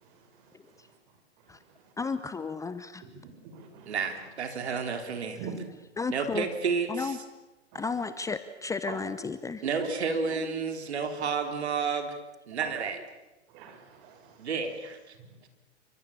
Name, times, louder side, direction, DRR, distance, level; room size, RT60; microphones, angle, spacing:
voice 1, 2.0-3.0 4.7-4.8 6.0-6.5 6.9-7.2 7.7-9.6, left 4 dB, 10° left, 12 dB, 0.9 m, -33 dB
voice 2, 3.1-4.0 5.3-5.6 7.7-7.8 8.9-9.0 9.8-9.9 10.3-10.4 12.6-12.9 13.5-14.3 15.2-15.3, right 6 dB, 45° right, 6 dB, 5.9 m, -41 dB
voice 3, 3.9-5.4 6.1-7.2 9.6-12.2 12.5-13.0 14.4-15.0 15.4-15.5, right 5 dB, 65° right, 6 dB, 3.7 m, -31 dB
29.5 x 24.5 x 7.3 m, 1.1 s
figure-of-eight pair, 105°, 35 cm